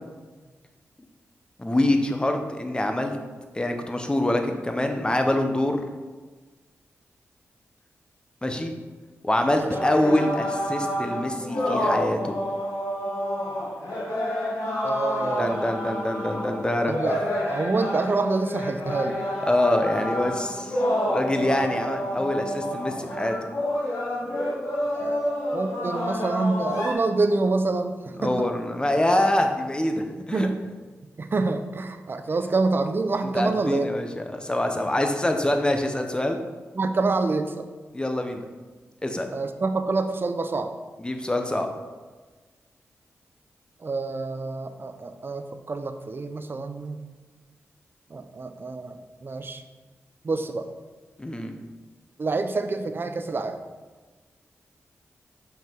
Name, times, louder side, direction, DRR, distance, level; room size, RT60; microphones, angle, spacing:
voice 1, 1.6-3.2 3.5-5.8 8.4-8.7 9.2-12.3 15.4-16.9 19.5-20.8 21.1-23.3 28.2-30.5 33.3-36.4 37.9-38.4 39.0-39.3 41.0-41.7 51.2-51.5, left 1 dB, 20° left, 5 dB, 1.0 m, -25 dB
sound 1, 9.6-26.9, equal, 90° left, 2.0 m, -29 dB
voice 2, 14.8-15.6 16.9-17.2 17.5-19.2 21.6-21.8 24.9-28.5 30.3-30.6 31.2-33.9 36.7-37.6 39.3-40.7 43.8-47.0 48.1-49.0 49.2-49.6 50.2-50.7 52.2-53.6, right 3 dB, 45° right, 8 dB, 0.6 m, -27 dB
5.7 x 5.6 x 4.6 m, 1.3 s
cardioid pair, 60°, 5 cm